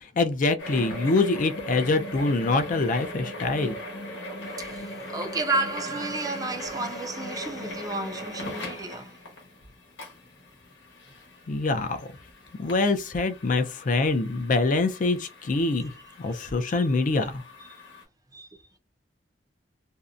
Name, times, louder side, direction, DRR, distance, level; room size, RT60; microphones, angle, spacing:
voice 1, 0.0-3.8 11.5-12.1 12.6-15.9 16.2-17.4, left 3 dB, 45° left, 0.4 m, -25 dB
sound 1, 0.6-18.0, left 1 dB, 90° left, 1.0 m, -39 dB
voice 2, 4.6-9.2 16.7-16.9 18.3-18.8, right 2 dB, 20° right, 0.4 m, -32 dB
2.6 x 2.1 x 2.4 m
head